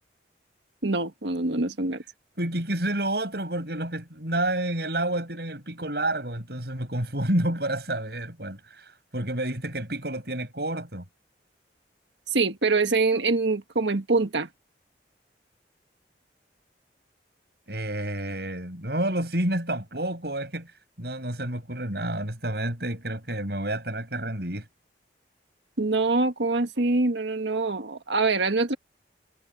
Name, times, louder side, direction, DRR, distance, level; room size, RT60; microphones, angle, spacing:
voice 1, 0.8-2.0 12.3-14.5 25.8-28.8, right 3 dB, 80° right, 1.6 m, -24 dB
voice 2, 2.4-11.0 17.7-20.7 21.0-24.7, right 1 dB, 65° right, 7.6 m, -29 dB
head